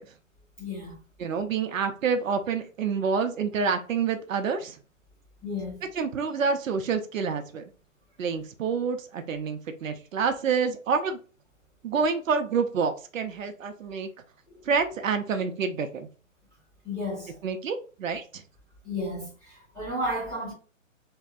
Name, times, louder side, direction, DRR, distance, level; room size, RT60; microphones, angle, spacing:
voice 1, 0.6-1.0 5.4-5.9 14.5-14.6 16.8-17.4 18.8-20.5, left 1 dB, 10° left, 0.9 m, -33 dB
voice 2, 1.2-4.8 5.9-7.6 8.2-11.2 11.8-14.1 14.7-16.1 17.4-18.4, right 5 dB, 75° right, 0.6 m, -28 dB
2.6 x 2.2 x 2.4 m
hypercardioid pair, 160°, 40 cm